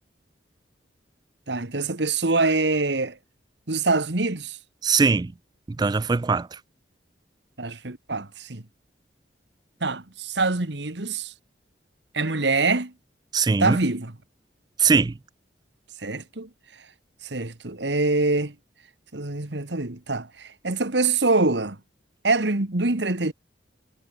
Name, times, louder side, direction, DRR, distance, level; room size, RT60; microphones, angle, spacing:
voice 1, 1.5-3.2 3.7-4.6 7.6-8.6 9.8-11.3 12.1-12.9 13.6-14.1 16.0-16.5 17.2-18.5 19.1-21.8 22.2-23.3, right 3 dB, 70° right, 1.7 m, -24 dB
voice 2, 4.8-5.3 5.7-6.5 13.3-13.8 14.8-15.1, right 5 dB, 20° right, 0.3 m, -21 dB
head